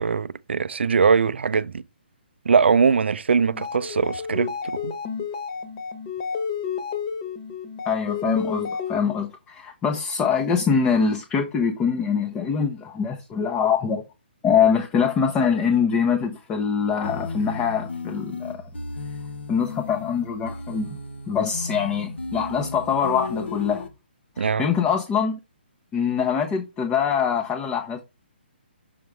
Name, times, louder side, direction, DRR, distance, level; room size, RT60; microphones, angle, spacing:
voice 1, 0.0-1.8 2.5-4.9 24.4-24.7, right 5 dB, 85° right, 0.4 m, -21 dB
sound 1, 3.5-9.3, left 6 dB, 35° left, 1.3 m, -31 dB
voice 2, 7.9-14.0 14.4-18.6 19.5-21.0 21.3-23.9 24.4-25.4 25.9-28.0, left 6 dB, 15° left, 0.7 m, -23 dB
sound 2, 17.0-23.9, left 3 dB, 85° left, 1.2 m, -34 dB
6.4 x 4.6 x 3.5 m
hypercardioid pair, 150°, 6 cm